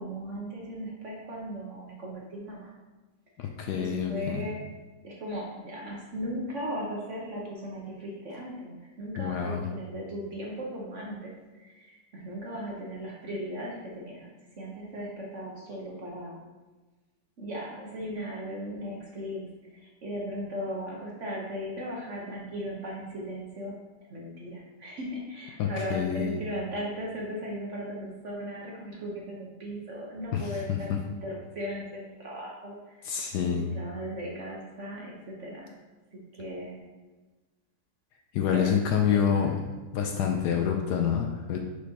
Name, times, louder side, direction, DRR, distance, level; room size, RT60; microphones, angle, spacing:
voice 1, 0.0-2.7 3.4-4.6 5.0-14.3 14.6-16.4 17.4-23.7 24.1-33.2 33.7-35.8 36.1-36.8 38.5-38.7 39.1-39.5, equal, 50° right, -3 dB, 1.0 m, -37 dB
voice 2, 3.4-4.4 9.2-9.7 25.6-26.4 30.3-31.0 33.0-33.7 38.3-39.6 39.9-41.6, left 7 dB, 75° left, 3 dB, 1.0 m, -27 dB
6.1 x 6.1 x 2.8 m, 1.2 s
omnidirectional pair, 2.0 m